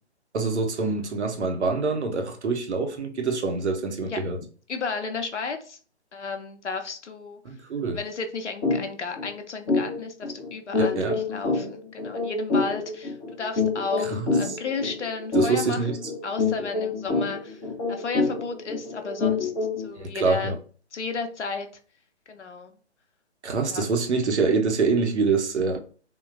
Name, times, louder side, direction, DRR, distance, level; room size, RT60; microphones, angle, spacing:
voice 1, 0.3-4.4 7.4-8.0 10.8-11.2 14.0-14.6 15.3-16.0 19.9-20.6 23.4-25.8, right 4 dB, 75° right, 0.8 m, -25 dB
voice 2, 4.7-5.8 6.1-7.4 7.9-15.8 16.2-17.6 17.9-19.5 19.8-20.5 20.9-21.7 22.3-22.7 23.7-23.9, left 4 dB, 85° left, 0.6 m, -33 dB
sound 1, 8.6-8.8 9.1-9.3 9.7-19.9, left 4 dB, 15° left, 0.7 m, -27 dB
3.6 x 2.1 x 2.4 m
figure-of-eight pair, 140°, 34 cm